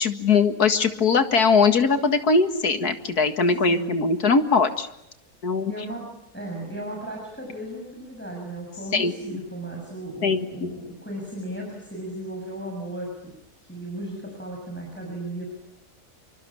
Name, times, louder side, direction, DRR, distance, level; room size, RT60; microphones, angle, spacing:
voice 1, 0.0-4.9 5.4-5.7 8.9-9.4 10.2-10.7, left 4 dB, 90° left, 8 dB, 2.4 m, -21 dB
voice 2, 5.7-6.1 6.3-13.1 13.6-15.6, right 1 dB, 5° left, -1 dB, 6.7 m, -35 dB
27.5 x 24.5 x 8.7 m, 0.80 s
omnidirectional pair, 1.6 m